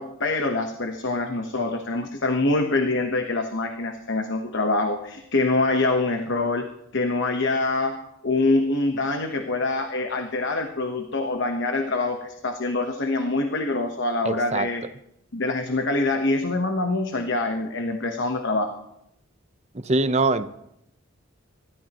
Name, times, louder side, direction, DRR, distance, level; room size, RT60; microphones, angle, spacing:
voice 1, 0.0-6.7 6.9-8.0 8.2-14.8 15.3-18.7, left 2 dB, 60° left, 5 dB, 1.1 m, -25 dB
voice 2, 14.2-14.7 19.8-20.5, right 3 dB, 35° right, 11 dB, 0.7 m, -22 dB
25.5 x 13.5 x 3.0 m, 0.80 s
head